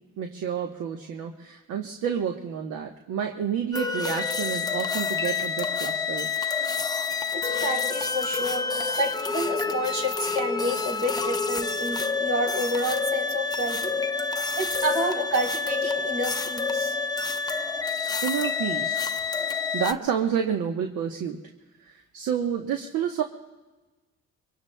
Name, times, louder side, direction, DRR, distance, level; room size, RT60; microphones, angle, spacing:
voice 1, 0.2-6.3 18.2-19.1 19.4-21.4 21.8-23.2, right 8 dB, 85° right, 3 dB, 1.1 m, -29 dB
sound 1, 3.7-19.9, left 5 dB, 15° left, 0.6 m, -28 dB
voice 2, 7.3-8.7 9.0-14.0 14.6-17.0, equal, 70° right, 0 dB, 4.2 m, -29 dB
25.0 x 24.0 x 2.2 m, 1.2 s
cardioid pair, 90°, 30 cm